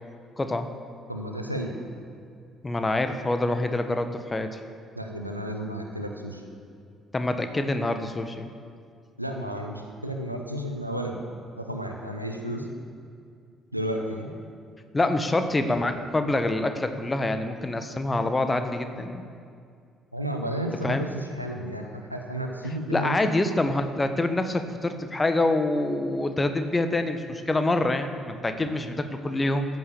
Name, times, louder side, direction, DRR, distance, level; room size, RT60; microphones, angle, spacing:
voice 1, 0.4-0.7 2.6-4.6 7.1-8.5 14.9-19.2 20.8-21.1 22.9-29.7, left 2 dB, 20° left, 8 dB, 1.3 m, -26 dB
voice 2, 1.1-1.7 4.9-6.4 9.2-11.2 11.6-12.7 13.7-14.3 20.1-23.2, equal, 90° right, 2 dB, 1.0 m, -32 dB
14.5 x 9.5 x 7.1 m, 2.3 s
figure-of-eight pair, 45°, 0 cm